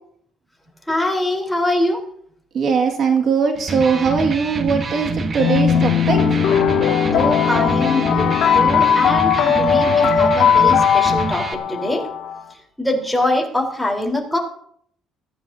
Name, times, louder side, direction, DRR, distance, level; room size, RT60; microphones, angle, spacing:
voice 1, 0.9-2.0 7.1-8.3 8.5-12.1 12.8-14.4, left 1 dB, 5° left, 0 dB, 4.1 m, -23 dB
voice 2, 2.5-6.4, right 5 dB, 55° right, 3 dB, 2.1 m, -20 dB
Electric guitar, 3.5-11.5, right 3 dB, 40° right, 1.4 m, -26 dB
sound 1, 5.4-12.4, left 7 dB, 80° left, 2.0 m, -18 dB
21.0 x 14.5 x 2.8 m, 0.66 s
cardioid pair, 95°, 0 cm